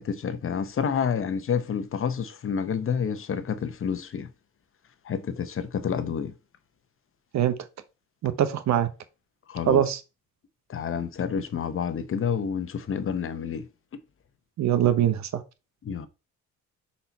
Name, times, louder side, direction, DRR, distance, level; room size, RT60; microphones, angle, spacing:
voice 1, 0.0-4.3 5.0-6.3 9.5-9.8 10.7-13.6 15.8-16.1, left 7 dB, 45° left, 0.8 m, -29 dB
voice 2, 8.2-8.9 9.7-10.0 14.6-15.4, right 10 dB, 65° right, 0.9 m, -22 dB
5.6 x 4.3 x 4.0 m
cardioid pair, 90°, 30 cm